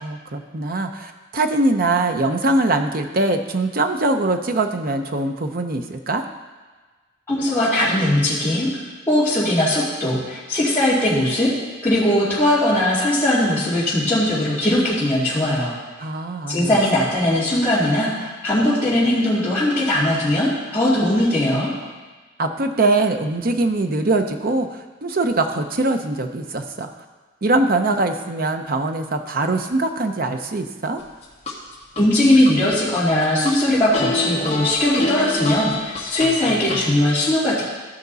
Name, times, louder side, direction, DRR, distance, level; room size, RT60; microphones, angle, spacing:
voice 1, 0.0-6.2 16.0-16.7 22.4-26.9 27.4-31.0, right 2 dB, 45° right, 6 dB, 0.7 m, -22 dB
voice 2, 7.3-8.7 9.1-11.5 11.8-15.7 16.5-21.7 32.0-37.6, left 1 dB, 10° left, -14 dB, 2.5 m, -19 dB
sound 1, 31.0-32.0 32.5-33.5 33.9-36.8, left 2 dB, 30° left, 1.8 m, -26 dB
15.5 x 5.2 x 4.0 m, 1.3 s
head